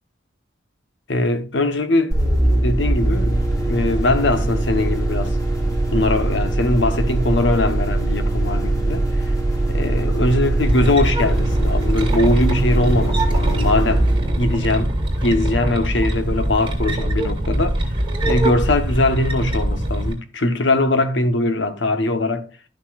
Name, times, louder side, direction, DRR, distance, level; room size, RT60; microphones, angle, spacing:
voice 1, 1.1-2.2 2.5-3.4 3.7-5.4 5.9-9.2 9.7-14.1 14.4-17.8 18.2-22.5, left 2 dB, 80° left, 1.1 m, -21 dB
sound 1, 2.1-15.6, right 1 dB, 15° left, 2.3 m, -21 dB
sound 2, 10.6-20.1, right 1 dB, 30° right, 2.2 m, -23 dB
12.0 x 6.0 x 2.4 m
head